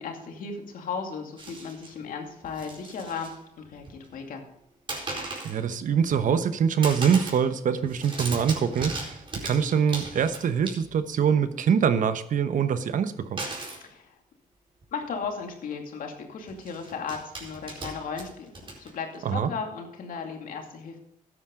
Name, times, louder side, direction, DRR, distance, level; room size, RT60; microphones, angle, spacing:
voice 1, 0.0-4.4 13.8-14.2 14.9-21.0, left 5 dB, 75° left, 3 dB, 2.5 m, -36 dB
sound 1, 1.4-1.9 2.4-3.4 3.7-4.2 4.9-5.6 6.0-6.5 6.8-7.5 7.7-11.1 13.4-13.8 14.8-14.9 15.2-15.4 16.5-19.2, right 2 dB, 35° right, 4.5 m, -37 dB
voice 2, 5.4-13.4 19.2-19.5, right 7 dB, 65° right, 11 dB, 1.0 m, -24 dB
13.0 x 9.6 x 3.8 m, 0.76 s
cardioid pair, 75°, 14 cm